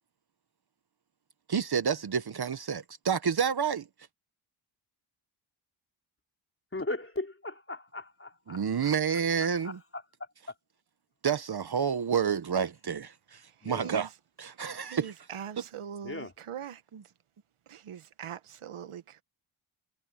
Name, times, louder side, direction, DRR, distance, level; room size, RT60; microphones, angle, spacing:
voice 1, 1.5-3.9 8.5-9.8 11.2-14.1 14.4-15.1 16.9-17.0, right 7 dB, 50° right, 1.2 m, -29 dB
voice 2, 6.7-8.9 9.6-9.7 13.6-13.9 16.0-16.3, left 2 dB, 25° left, 4.1 m, -38 dB
voice 3, 13.6-14.1 14.8-16.8 17.7-19.2, right 9 dB, 80° right, 1.5 m, -42 dB
cardioid pair, 70°, 50 cm